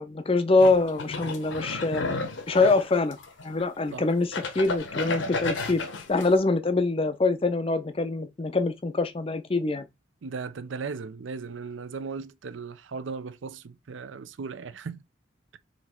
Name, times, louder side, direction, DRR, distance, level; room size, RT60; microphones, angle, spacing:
voice 1, 0.0-2.0 2.5-3.2 3.4-5.8 6.1-9.9, left 3 dB, 30° left, 0.5 m, -24 dB
sound 1, 0.6-3.6 4.1-6.3, left 3 dB, 70° left, 0.9 m, -33 dB
voice 2, 10.2-15.0, right 5 dB, 70° right, 0.5 m, -37 dB
4.2 x 2.9 x 4.3 m
head